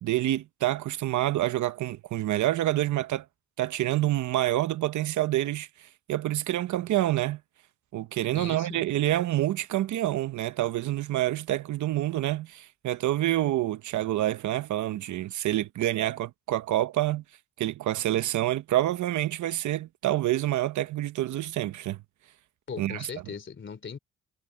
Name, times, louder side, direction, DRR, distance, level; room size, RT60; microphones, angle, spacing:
voice 1, 0.0-3.2 3.6-7.4 7.9-17.2 17.6-22.0 22.8-23.1, right 14 dB, 75° right, 1.0 m, -27 dB
voice 2, 8.3-8.8 22.7-24.0, left 6 dB, 40° left, 3.2 m, -39 dB
cardioid pair, 90°, 30 cm